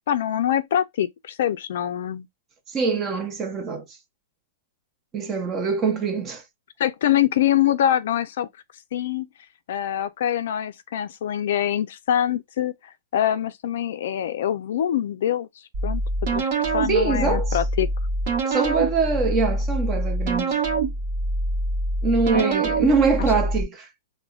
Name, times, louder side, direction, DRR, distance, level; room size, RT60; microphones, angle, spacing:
voice 1, 0.0-2.3 6.8-8.5 8.9-9.3 9.7-15.5 15.8-16.0 16.3-17.9 22.3-22.5, left 10 dB, 65° left, 0.3 m, -24 dB
voice 2, 2.7-3.8 5.1-6.4 16.9-17.6 18.4-20.6 22.0-23.9, right 4 dB, 20° right, 0.6 m, -23 dB
sound 1, 15.7-23.6, right 2 dB, 45° right, 1.0 m, -25 dB
4.8 x 2.1 x 2.3 m
hypercardioid pair, 160°, 0 cm